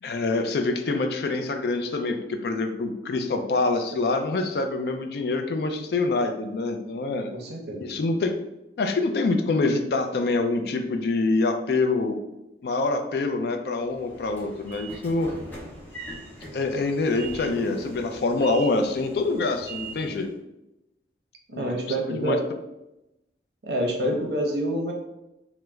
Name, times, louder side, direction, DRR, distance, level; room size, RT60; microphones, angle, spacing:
voice 1, 0.0-7.3 7.8-8.4 8.8-12.2 12.6-15.3 16.5-20.3 21.5-21.7 22.1-22.4, left 3 dB, 60° left, 6 dB, 0.3 m, -25 dB
voice 2, 7.3-8.0 21.5-22.4 23.6-24.9, right 1 dB, 65° right, 1 dB, 0.6 m, -27 dB
Train / Sliding door, 13.8-20.3, right 2 dB, 10° left, 0.6 m, -41 dB
3.1 x 2.0 x 3.4 m, 0.92 s
head